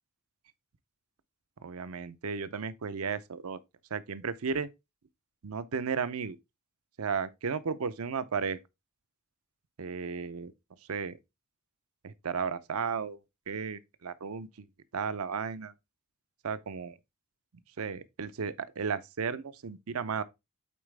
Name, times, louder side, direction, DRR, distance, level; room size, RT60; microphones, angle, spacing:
voice 1, 1.6-3.6 3.9-4.7 5.4-6.4 7.0-8.6 9.8-10.5 10.9-11.2 12.0-13.2 13.5-14.7 14.9-15.7 16.4-17.0 17.8-20.2, right 5 dB, 75° right, 0.6 m, -34 dB
8.5 x 4.0 x 3.3 m
head